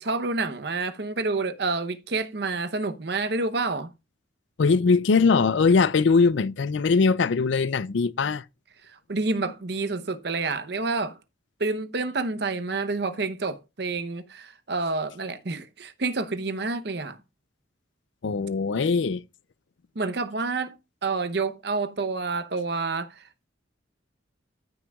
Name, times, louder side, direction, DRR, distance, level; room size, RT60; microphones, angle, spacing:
voice 1, 0.0-3.9 8.8-11.2 11.6-17.2 19.9-20.8 21.0-23.5, right 3 dB, 55° right, 0.8 m, -28 dB
voice 2, 4.6-8.4 18.2-19.2, left 4 dB, 75° left, 0.5 m, -21 dB
14.5 x 5.8 x 2.3 m
head